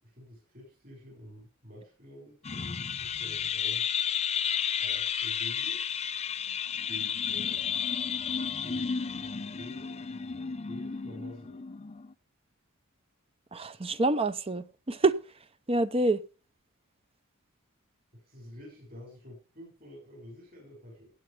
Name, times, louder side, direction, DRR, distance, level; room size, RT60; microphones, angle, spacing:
voice 1, 0.0-3.9 4.8-5.8 6.9-7.6 8.6-8.9 9.2-10.0 10.7-11.6 18.1-21.1, equal, 45° right, 6.3 m, -48 dB
sound 1, 2.4-12.1, left 7 dB, 30° left, 0.5 m, -32 dB
voice 2, 13.5-15.2 15.7-16.2, right 2 dB, 25° right, 0.7 m, -27 dB
17.0 x 8.7 x 3.4 m
head